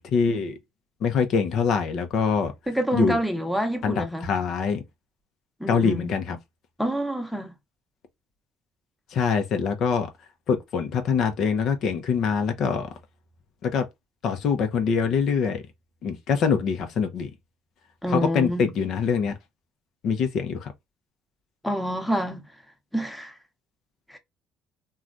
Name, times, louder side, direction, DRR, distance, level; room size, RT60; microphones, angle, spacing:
voice 1, 0.1-0.6 1.0-2.5 2.9-3.2 3.8-4.8 5.7-6.4 9.1-10.1 10.5-12.9 13.6-13.9 14.2-15.6 16.0-17.3 18.1-19.3 20.0-20.7, left 6 dB, 65° left, 0.7 m, -24 dB
voice 2, 2.7-4.3 5.6-6.1 6.8-7.5 18.0-18.7 21.6-22.5 22.9-23.3 24.1-24.2, equal, ahead, 0.9 m, -27 dB
3.1 x 2.4 x 2.5 m
supercardioid pair, 75°, 0 cm